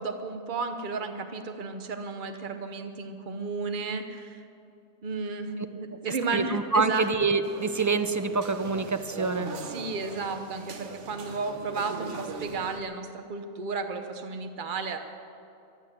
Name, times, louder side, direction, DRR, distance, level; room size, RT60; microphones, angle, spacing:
voice 1, 0.0-4.4 5.0-7.1 9.7-15.0, right 4 dB, 45° right, 7 dB, 1.1 m, -33 dB
voice 2, 6.3-9.5, right 4 dB, 25° right, 9 dB, 0.4 m, -26 dB
sound 1, 7.4-12.8, right 4 dB, 90° right, 1.4 m, -41 dB
15.0 x 11.0 x 7.6 m, 2.6 s
omnidirectional pair, 1.2 m